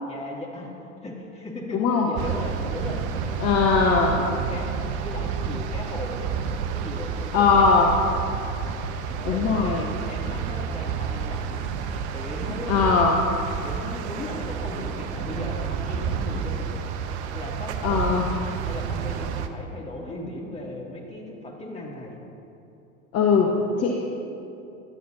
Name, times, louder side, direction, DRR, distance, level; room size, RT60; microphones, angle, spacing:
voice 1, 0.0-0.7 1.0-4.7 5.0-6.3 6.7-8.2 9.1-11.7 12.1-12.9 13.6-16.8 17.3-18.0 18.6-22.2, left 1 dB, 15° left, -2 dB, 2.8 m, -37 dB
voice 2, 1.7-2.1 3.4-4.1 7.3-7.9 9.2-9.8 12.7-13.2 17.8-18.3 23.1-24.1, left 5 dB, 40° left, 0 dB, 1.4 m, -20 dB
sound 1, 2.2-19.5, right 6 dB, 55° right, 1.0 m, -30 dB
20.0 x 12.5 x 2.8 m, 2.8 s
figure-of-eight pair, 80°, 41 cm